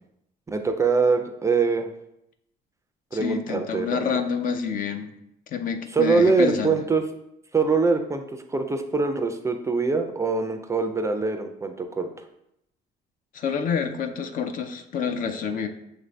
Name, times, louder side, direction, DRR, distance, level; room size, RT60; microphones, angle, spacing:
voice 1, 0.5-1.9 3.1-4.1 5.9-7.0 7.5-8.2 8.5-12.1, right 4 dB, 15° right, 6 dB, 0.4 m, -23 dB
voice 2, 3.2-5.1 5.5-6.8 13.3-15.7, left 6 dB, 55° left, 8 dB, 0.5 m, -28 dB
6.1 x 2.5 x 3.2 m, 0.80 s
cardioid pair, 110°, 17 cm